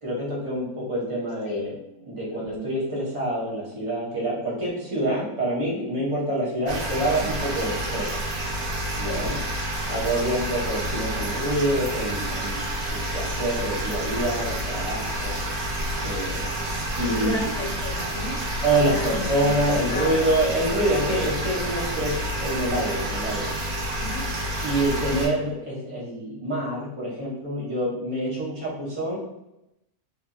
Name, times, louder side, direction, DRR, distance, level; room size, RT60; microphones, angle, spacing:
voice 1, 0.0-1.7 2.0-8.3 8.9-9.3 9.9-12.6 12.8-15.4 16.0-16.4 17.0-17.4 18.6-23.5 24.6-29.2, right 1 dB, 25° right, -7 dB, 0.9 m, -26 dB
sound 1, 6.7-25.3, equal, 75° right, 1.2 m, -29 dB
voice 2, 9.0-9.4 10.0-10.2 16.6-16.7 17.0-18.4 18.7-20.2 24.0-24.3, left 2 dB, 60° left, -2 dB, 1.0 m, -33 dB
2.8 x 2.5 x 2.4 m, 0.87 s
omnidirectional pair, 1.5 m